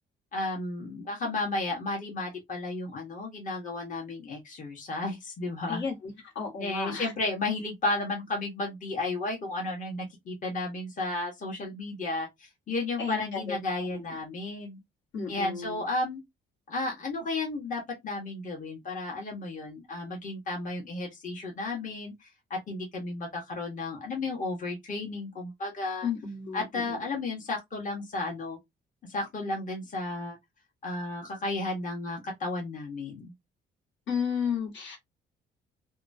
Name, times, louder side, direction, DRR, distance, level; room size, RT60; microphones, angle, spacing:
voice 1, 0.3-5.8 6.6-14.8 15.3-16.2 16.7-26.1 26.5-28.6 29.1-30.4 30.8-33.3, left 2 dB, 40° left, 1.1 m, -33 dB
voice 2, 6.3-7.1 13.0-13.6 13.9-14.2 15.1-15.8 26.0-27.0 34.1-35.0, left 6 dB, 70° left, 1.4 m, -33 dB
2.8 x 2.3 x 2.6 m
cardioid pair, 90°, 20 cm